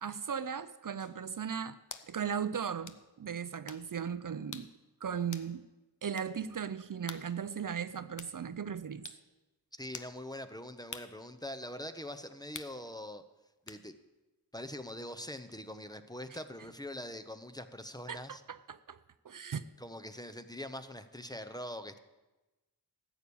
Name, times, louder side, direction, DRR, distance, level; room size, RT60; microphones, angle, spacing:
voice 1, 0.0-1.8 2.1-4.7 5.0-5.6 6.0-9.1 16.3-16.4 18.1-19.0 19.2-19.7, right 7 dB, 55° right, 13 dB, 0.5 m, -37 dB
sound 1, 1.0-1.2 1.9-2.1 2.9-3.0 3.7-3.9 4.5-4.7 5.3-5.5 6.2-6.3 7.1-7.3 8.2-8.4 9.0-9.2 9.9-10.2 10.9-11.1 12.5-12.8 13.7-13.8, left 5 dB, 50° left, 0.8 m, -46 dB
voice 2, 9.7-13.2 13.7-13.9 14.5-18.4 19.8-22.0, left 1 dB, 10° left, 10 dB, 0.7 m, -43 dB
14.0 x 8.5 x 6.9 m, 1.1 s
wide cardioid pair, 90°, 39 cm